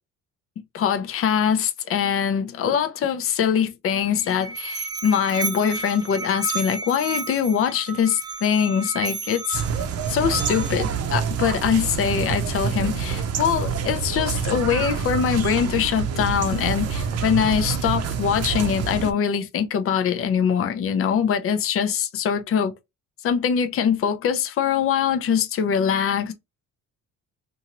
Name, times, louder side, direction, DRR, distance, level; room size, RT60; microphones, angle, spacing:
voice 1, 0.7-9.6 10.1-22.7 23.2-26.3, left 8 dB, 45° left, 0.6 m, -23 dB
Musical instrument, 4.0-10.9, right 4 dB, 15° right, 0.4 m, -33 dB
sound 1, 9.5-19.1, right 7 dB, 50° right, 0.7 m, -27 dB
2.7 x 2.6 x 2.9 m
cardioid pair, 115°, 32 cm